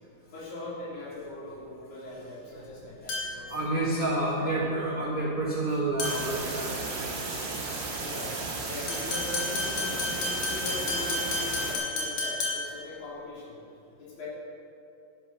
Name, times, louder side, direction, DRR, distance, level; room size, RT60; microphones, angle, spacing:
voice 1, 0.3-3.6 4.1-5.1 8.0-8.4 8.7-13.6 14.0-14.3, left 1 dB, 75° left, -7 dB, 5.0 m, -40 dB
voice 2, 3.0-7.2 8.2-8.3, right 2 dB, 80° right, -4 dB, 0.7 m, -30 dB
sound 1, 3.1-3.5 6.0-6.4 8.9-12.8, left 2 dB, 60° left, 3.5 m, -32 dB
sound 2, 6.0-11.7, right 3 dB, 60° right, 3.4 m, -34 dB
12.5 x 10.5 x 5.5 m, 2.5 s
omnidirectional pair, 4.0 m